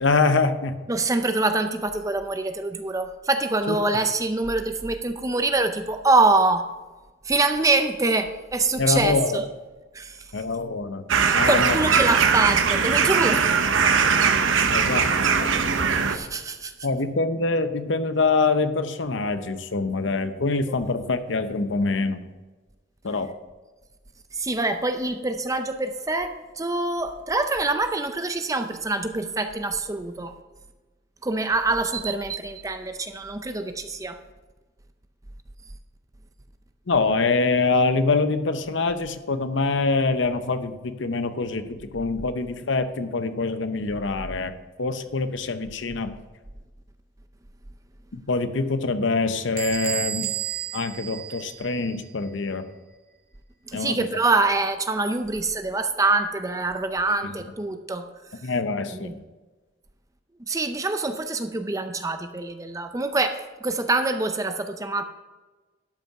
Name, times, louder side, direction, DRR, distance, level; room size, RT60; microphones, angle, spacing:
voice 1, 0.0-0.8 3.7-3.8 8.8-9.3 10.3-11.0 11.3-11.8 14.7-15.1 15.4-15.5 16.8-22.2 23.0-23.3 36.9-44.5 44.8-46.1 48.1-50.3 50.7-52.7 53.7-54.0 57.2-57.3 58.4-59.1, left 3 dB, 65° left, 10 dB, 0.7 m, -24 dB
voice 2, 0.9-6.7 7.2-9.4 9.9-10.4 11.2-13.5 15.9-16.7 24.3-30.3 31.2-34.2 53.7-58.1 58.4-58.5 58.9-59.2 60.4-65.0, right 3 dB, 15° right, 8 dB, 0.5 m, -25 dB
sound 1, 11.1-16.2, right 6 dB, 75° right, 0.8 m, -20 dB
Bell / Door, 49.6-52.1, right 11 dB, 45° right, 0.8 m, -32 dB
12.0 x 5.5 x 5.9 m, 1.2 s
head